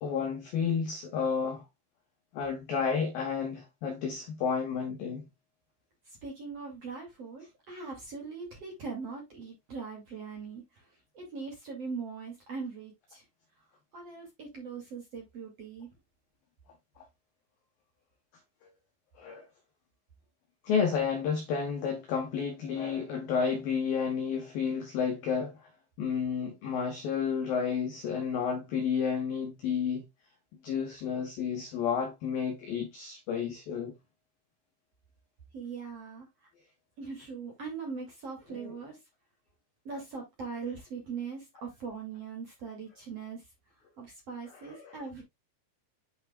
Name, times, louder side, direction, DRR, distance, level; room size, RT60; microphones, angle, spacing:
voice 1, 0.0-1.6 2.3-5.3 19.2-19.4 20.6-25.6 26.0-30.0 30.6-33.9 38.5-38.7 44.5-45.0, left 6 dB, 75° left, 2.2 m, -31 dB
voice 2, 6.2-10.6 11.1-13.2 13.9-15.9 35.5-36.3 37.0-39.0 39.8-43.4 44.0-45.2, right 5 dB, 40° right, 2.6 m, -40 dB
8.8 x 5.8 x 2.3 m
omnidirectional pair, 5.7 m